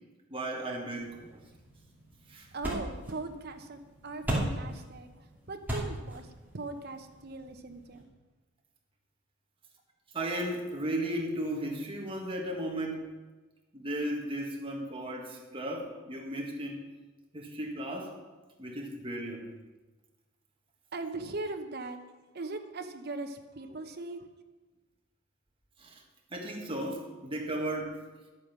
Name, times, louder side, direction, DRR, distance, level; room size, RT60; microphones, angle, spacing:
voice 1, 0.3-1.4 2.3-2.5 10.1-13.1 13.7-16.8 17.3-18.2 18.6-19.5 25.8-26.0 26.3-28.0, right 1 dB, 25° right, 0 dB, 1.7 m, -35 dB
sound 1, 0.9-8.0, right 1 dB, 10° right, 2.6 m, -39 dB
voice 2, 2.5-8.1 20.9-22.0 22.3-24.3, right 2 dB, 50° right, 6 dB, 0.9 m, -40 dB
11.5 x 8.5 x 6.1 m, 1.2 s
head